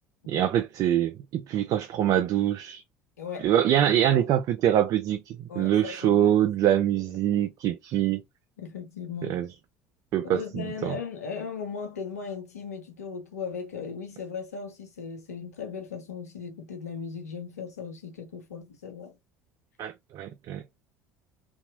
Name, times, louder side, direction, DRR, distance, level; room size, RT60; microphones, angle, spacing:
voice 1, 0.3-2.8 3.4-8.2 9.2-9.5 10.1-11.0 19.8-20.6, right 11 dB, 45° right, 0.4 m, -24 dB
voice 2, 3.2-3.5 4.1-4.2 5.5-6.4 8.6-9.4 10.2-19.1, left 6 dB, 80° left, 0.8 m, -37 dB
2.8 x 2.7 x 2.5 m
figure-of-eight pair, 65°, 8 cm